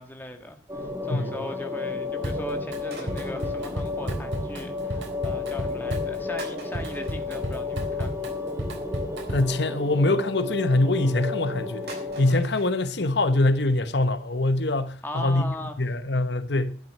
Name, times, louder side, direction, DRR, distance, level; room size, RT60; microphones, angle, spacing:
voice 1, 0.0-8.3 15.0-15.8, left 1 dB, 10° left, 1.7 m, -39 dB
sound 1, 0.7-12.3, left 3 dB, 15° right, 2.4 m, -32 dB
Drum kit, 2.2-2.8 3.1-9.6, equal, 80° right, 4.0 m, -33 dB
sound 2, 2.9-4.6 4.9-5.4 6.0-6.1 6.4-9.9 10.6-11.2 11.5-11.6 11.9-12.7 13.1-13.2 13.4-13.5 13.9-14.0 14.2-14.3 14.7-14.8 15.1-15.2 15.6-15.7 16.0-16.1, right 2 dB, 60° right, 6.1 m, -46 dB
voice 2, 9.3-11.9 12.2-16.8, left 2 dB, 70° left, 1.1 m, -24 dB
12.0 x 10.5 x 6.6 m
head